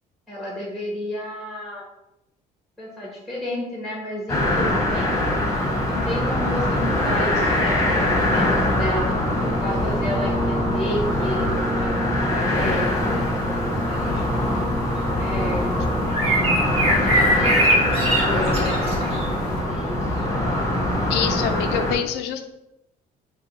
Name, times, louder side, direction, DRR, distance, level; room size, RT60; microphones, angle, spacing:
voice 1, 0.3-1.9 2.8-5.4 5.8-15.7 16.8-17.9 18.1-20.2, left 1 dB, ahead, -3 dB, 1.3 m, -32 dB
sound 1, 4.3-21.9, left 1 dB, 20° left, 1.2 m, -23 dB
Brass instrument, 9.3-16.4, right 1 dB, 15° right, 0.4 m, -31 dB
sound 2, 12.6-19.6, right 1 dB, 35° right, 1.5 m, -25 dB
voice 2, 21.1-22.5, left 9 dB, 90° left, 8 dB, 0.5 m, -25 dB
5.1 x 2.3 x 4.1 m, 0.88 s
cardioid pair, 110°, 17 cm